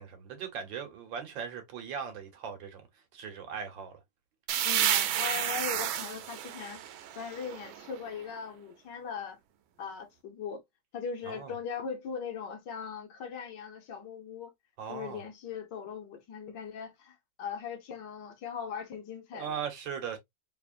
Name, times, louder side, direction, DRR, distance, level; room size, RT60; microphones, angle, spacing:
voice 1, 0.0-2.8 3.1-4.0 11.3-11.5 14.8-15.2 19.3-20.2, right 7 dB, 70° right, 1.7 m, -39 dB
sound 1, 4.5-8.1, right 10 dB, 90° right, 1.5 m, -31 dB
voice 2, 4.6-6.8 7.1-9.4 9.8-10.6 10.9-14.5 14.9-19.6, left 6 dB, 65° left, 1.5 m, -39 dB
3.7 x 3.5 x 2.4 m
omnidirectional pair, 2.1 m